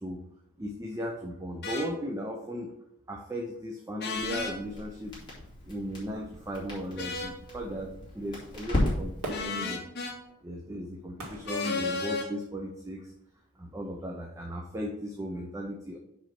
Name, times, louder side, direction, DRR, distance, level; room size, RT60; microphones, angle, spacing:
voice 1, 0.6-2.7 3.1-5.2 5.6-9.8 10.4-13.1 13.6-16.0, equal, 15° right, 1 dB, 0.6 m, -36 dB
sound 1, 1.6-1.9 4.0-4.5 7.0-7.4 9.3-10.1 11.5-12.3, left 4 dB, 50° left, 1.1 m, -33 dB
Crackle, 4.2-9.4, left 1 dB, 20° left, 2.6 m, -35 dB
Fireworks, 9.2-12.5 13.1-13.2, right 1 dB, 85° right, 2.0 m, -43 dB
5.5 x 5.0 x 5.9 m, 0.82 s
head